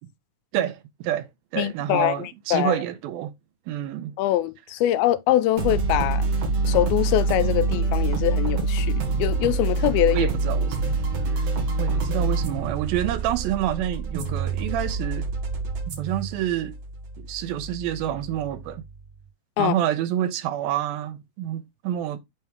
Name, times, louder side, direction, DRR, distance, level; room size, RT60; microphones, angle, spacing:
voice 1, 0.5-3.3 3.7-4.2 10.1-10.9 11.3-11.5 11.8-15.3 16.0-16.8 17.2-18.8 19.6-22.2, right 11 dB, 85° right, 2.5 m, -28 dB
voice 2, 1.6-2.8 4.2-6.3 6.6-10.3 19.6-19.7, left 14 dB, 85° left, 2.4 m, -23 dB
sound 1, 5.6-19.0, right 3 dB, 55° right, 2.4 m, -26 dB
8.5 x 3.4 x 3.5 m
omnidirectional pair, 4.3 m